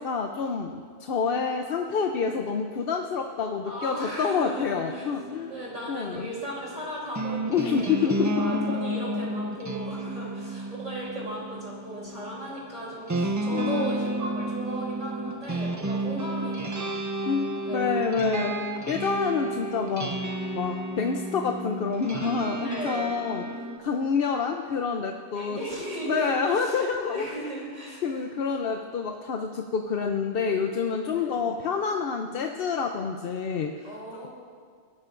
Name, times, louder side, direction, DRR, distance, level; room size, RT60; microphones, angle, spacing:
voice 1, 0.0-5.5 5.9-6.3 7.5-8.5 13.5-13.9 17.3-18.6 18.9-20.2 20.6-25.6 26.0-27.3 28.0-33.9, left 5 dB, 60° left, 4 dB, 0.8 m, -28 dB
voice 2, 3.6-5.1 5.5-17.0 17.6-17.9 22.6-23.1 25.3-28.2 31.1-31.5 33.8-34.3, right 1 dB, 40° right, -6 dB, 3.4 m, -36 dB
sound 1, 4.6-23.8, right 1 dB, 20° right, 0.5 m, -32 dB
23.0 x 12.0 x 2.5 m, 2.1 s
omnidirectional pair, 1.1 m